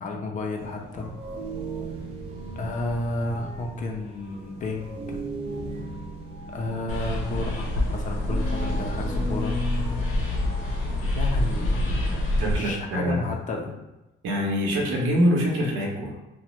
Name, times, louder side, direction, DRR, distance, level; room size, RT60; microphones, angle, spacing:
voice 1, 0.0-1.2 2.6-5.2 6.5-9.6 11.1-13.7, left 2 dB, 40° left, 2 dB, 0.4 m, -32 dB
sound 1, 0.6-13.4, equal, 30° right, 0.7 m, -37 dB
sound 2, 6.9-12.6, left 1 dB, 85° left, 0.7 m, -26 dB
voice 2, 12.4-13.2 14.2-16.2, equal, 75° right, -1 dB, 0.8 m, -24 dB
2.9 x 2.1 x 3.0 m, 0.99 s
cardioid pair, 135°, 20 cm